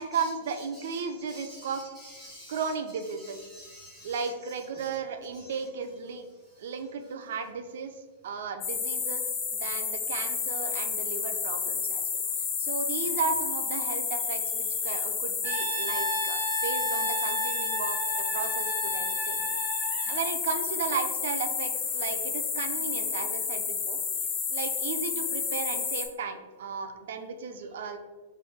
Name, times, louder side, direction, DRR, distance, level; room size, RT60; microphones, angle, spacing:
voice 1, 0.0-1.9 2.5-3.4 4.0-6.3 6.6-8.0 8.2-9.2 9.5-18.0 18.3-19.4 20.1-24.0 24.5-28.0, right 5 dB, 70° right, 7 dB, 0.5 m, -35 dB
voice 2, 1.3-1.8 2.1-2.6 3.2-4.1 4.7-4.8 5.3-5.4 15.8-15.9, equal, 10° right, -8 dB, 1.1 m, -48 dB
sound 1, 8.6-26.1, left 6 dB, 25° left, 0.7 m, -31 dB
Brass instrument, 15.4-20.3, equal, 85° right, 1.2 m, -33 dB
4.4 x 3.2 x 3.5 m, 1.3 s
supercardioid pair, 160°, 0 cm